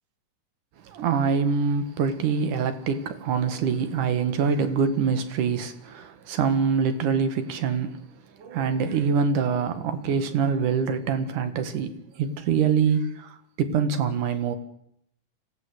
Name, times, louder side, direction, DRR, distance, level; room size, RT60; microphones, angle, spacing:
voice 1, 0.9-8.0 8.4-13.3 13.6-14.6, right 6 dB, 75° right, 3.2 m, -25 dB
25.5 x 16.5 x 8.0 m
omnidirectional pair, 3.7 m